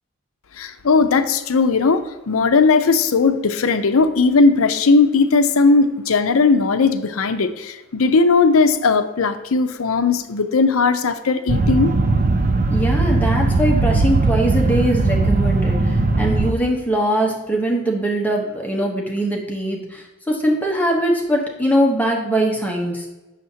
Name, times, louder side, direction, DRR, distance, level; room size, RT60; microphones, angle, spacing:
voice 1, 0.6-11.9, left 4 dB, 75° left, 0.6 m, -17 dB
sound 1, 11.5-16.5, right 3 dB, 35° right, 0.5 m, -18 dB
voice 2, 12.7-23.1, right 1 dB, 5° left, 0.9 m, -21 dB
7.6 x 6.5 x 2.8 m
head